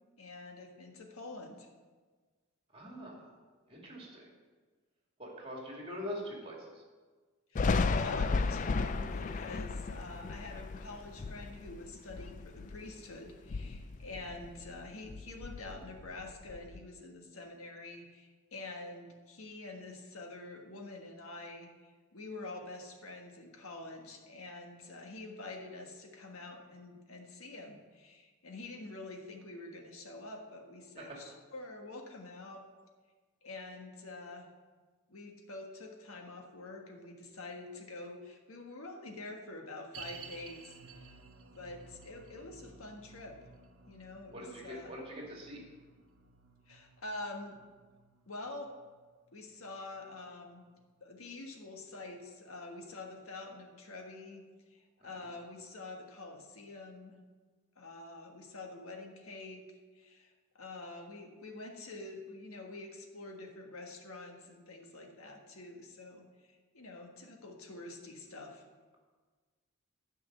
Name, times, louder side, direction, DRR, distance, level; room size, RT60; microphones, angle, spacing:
voice 1, 0.2-1.7 7.5-32.6 33.4-34.5 35.1-41.1 41.5-43.4 43.9-44.9 46.7-47.6 48.3-48.7 49.3-50.7 51.0-54.4 54.7-57.2 57.7-59.6 59.9-68.6, left 2 dB, 90° left, 2 dB, 1.5 m, -46 dB
voice 2, 2.7-3.3 3.7-4.3 5.2-6.8 31.0-31.2 44.3-45.6 55.0-55.3, equal, 25° right, -2 dB, 2.3 m, -43 dB
Thunder, 7.6-13.0 13.4-14.8 15.1-16.8, left 4 dB, 35° left, 0.3 m, -34 dB
sound 1, 39.9-51.2 51.5-51.6 52.2-52.3, right 5 dB, 80° right, 0.8 m, -55 dB
9.7 x 5.5 x 7.9 m, 1.4 s
head